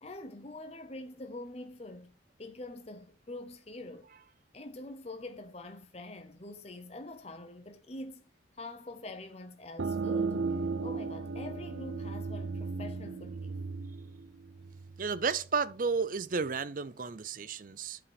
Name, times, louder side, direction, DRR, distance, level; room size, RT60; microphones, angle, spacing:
voice 1, 0.0-2.1 2.4-4.1 4.5-8.2 8.5-10.4 10.8-13.6, left 2 dB, 35° left, 0.8 m, -45 dB
sound 1, 9.8-15.2, right 4 dB, 90° right, 0.6 m, -35 dB
voice 2, 15.0-18.0, right 5 dB, 45° right, 0.5 m, -32 dB
8.4 x 4.9 x 5.1 m
head